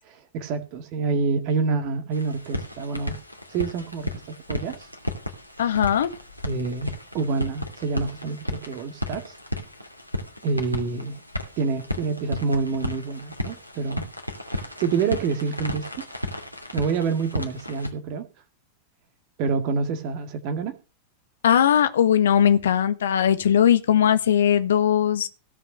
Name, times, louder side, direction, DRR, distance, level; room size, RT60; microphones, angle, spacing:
voice 1, 0.1-3.2 3.5-4.9 6.5-9.3 10.4-11.2 11.6-14.1 14.5-16.1 16.7-18.3 19.4-20.8, right 4 dB, 45° right, 2.0 m, -27 dB
sound 1, 2.1-17.9, left 1 dB, 90° right, 2.5 m, -34 dB
voice 2, 5.6-6.1 21.4-25.3, left 9 dB, 65° left, 1.4 m, -19 dB
17.0 x 5.8 x 6.7 m
figure-of-eight pair, 90°, 0 cm